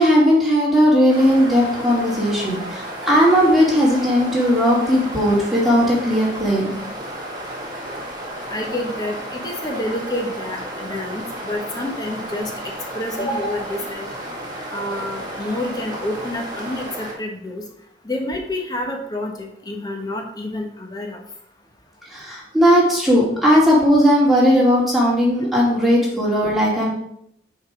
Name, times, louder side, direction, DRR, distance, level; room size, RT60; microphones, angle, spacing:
voice 1, 0.0-6.8 22.1-26.9, equal, ahead, -6 dB, 2.3 m, -17 dB
sound 1, 1.1-17.1, right 1 dB, 25° right, 1.9 m, -33 dB
voice 2, 8.5-12.5 12.9-14.1 14.7-17.6 18.0-21.2, left 1 dB, 20° left, 2 dB, 1.2 m, -28 dB
5.7 x 4.9 x 6.0 m, 0.71 s
head